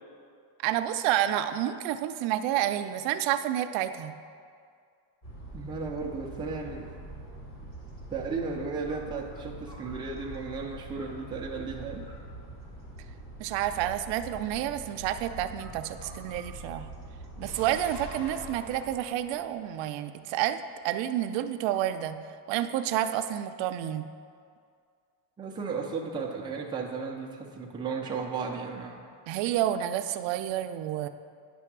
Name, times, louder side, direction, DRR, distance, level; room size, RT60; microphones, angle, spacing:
voice 1, 0.6-4.1 13.4-16.9 17.4-20.6 20.8-22.2 22.5-24.1 29.3-31.1, right 12 dB, 85° right, 9 dB, 0.5 m, -29 dB
sound 1, 5.2-18.5, right 1 dB, 40° left, 1.9 m, -44 dB
voice 2, 5.5-6.9 8.1-12.1 25.4-29.1, right 4 dB, 10° right, -1 dB, 0.4 m, -35 dB
sound 2, 17.4-20.6 20.9-21.0, equal, 65° left, 1.6 m, -48 dB
9.8 x 3.4 x 6.0 m, 2.2 s
cardioid pair, 180°, 44 cm